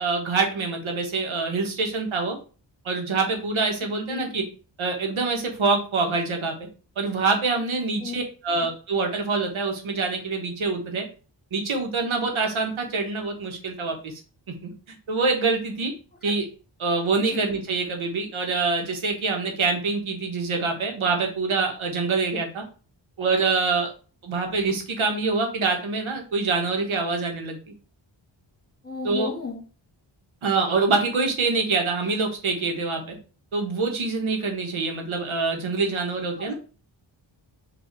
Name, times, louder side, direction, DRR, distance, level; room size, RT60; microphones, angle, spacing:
voice 1, 0.0-2.4 2.8-4.4 4.8-6.5 7.0-11.0 11.5-14.2 14.6-14.7 15.1-15.9 16.2-16.4 16.8-22.6 23.2-23.9 24.2-27.6 29.0-29.3 30.4-33.2 33.5-36.5, right 4 dB, 90° right, 3 dB, 1.2 m, -25 dB
voice 2, 28.8-29.6 36.4-36.5, left 4 dB, 20° left, 3 dB, 1.5 m, -34 dB
5.1 x 2.7 x 3.9 m, 0.37 s
wide cardioid pair, 80°, 47 cm